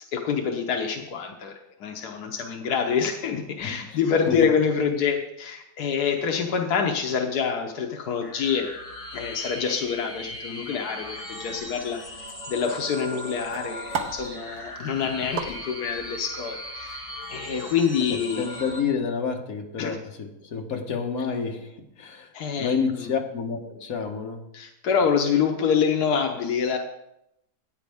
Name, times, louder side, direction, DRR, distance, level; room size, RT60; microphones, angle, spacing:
voice 1, 0.1-1.5 1.8-8.7 9.1-12.0 12.5-18.4 19.8-19.9 22.3-22.7 24.5-26.8, left 6 dB, 85° left, 3 dB, 1.4 m, -26 dB
voice 2, 3.6-4.5 15.0-15.1 18.0-24.4, left 5 dB, 65° left, 3 dB, 1.7 m, -30 dB
sound 1, 8.1-18.8, left 1 dB, 20° left, 1.8 m, -38 dB
sound 2, 11.4-18.0, right 5 dB, 75° right, 1.6 m, -39 dB
14.0 x 9.2 x 3.5 m, 0.84 s
omnidirectional pair, 1.6 m